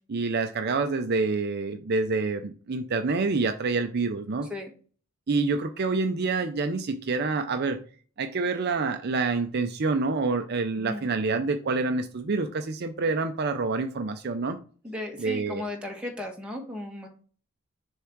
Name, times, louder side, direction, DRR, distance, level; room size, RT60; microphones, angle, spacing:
voice 1, 0.1-4.5 5.3-7.8 8.2-14.6 15.2-15.6, right 3 dB, 50° right, 7 dB, 0.5 m, -27 dB
voice 2, 10.8-11.1 14.8-17.1, left 1 dB, 5° right, 0 dB, 1.3 m, -35 dB
6.8 x 3.6 x 4.5 m, 0.41 s
head